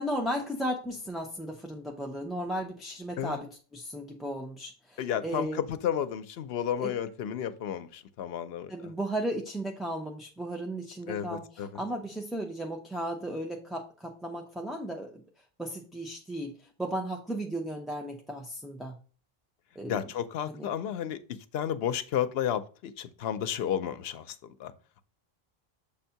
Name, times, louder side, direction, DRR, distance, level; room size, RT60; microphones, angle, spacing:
voice 1, 0.0-5.6 6.8-6.9 8.7-15.2 15.6-19.0 19.8-20.0 20.5-20.7, right 1 dB, ahead, 0 dB, 0.5 m, -35 dB
voice 2, 5.0-8.9 11.1-11.7 19.9-24.7, left 9 dB, 75° left, 12 dB, 0.8 m, -32 dB
7.0 x 2.7 x 5.7 m, 0.38 s
omnidirectional pair, 1.0 m